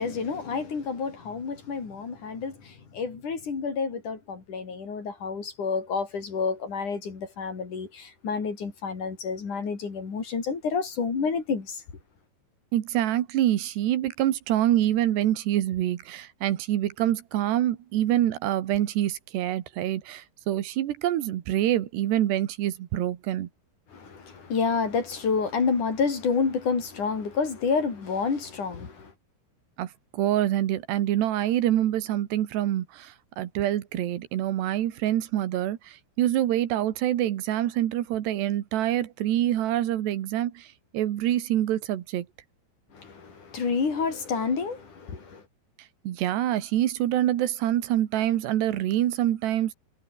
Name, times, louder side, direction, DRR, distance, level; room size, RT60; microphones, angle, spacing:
voice 1, 0.0-11.8 23.9-29.1 42.9-45.4, left 5 dB, 50° left, 5.5 m, -29 dB
voice 2, 12.7-23.5 29.8-40.7 40.9-42.3 46.1-49.7, right 12 dB, 85° right, 3.8 m, -26 dB
omnidirectional pair, 4.7 m